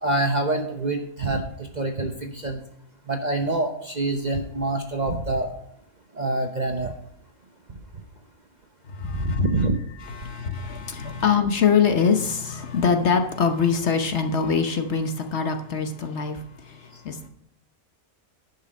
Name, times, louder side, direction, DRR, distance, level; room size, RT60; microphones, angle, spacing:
voice 1, 0.0-2.6 3.1-5.5 6.1-6.9 9.0-9.8, right 2 dB, 40° right, 4 dB, 0.8 m, -26 dB
voice 2, 8.9-9.5 10.1-16.4 16.7-16.8 17.0-17.3, left 6 dB, 55° left, 5 dB, 1.1 m, -23 dB
10.5 x 5.7 x 5.2 m, 0.69 s
omnidirectional pair, 1.5 m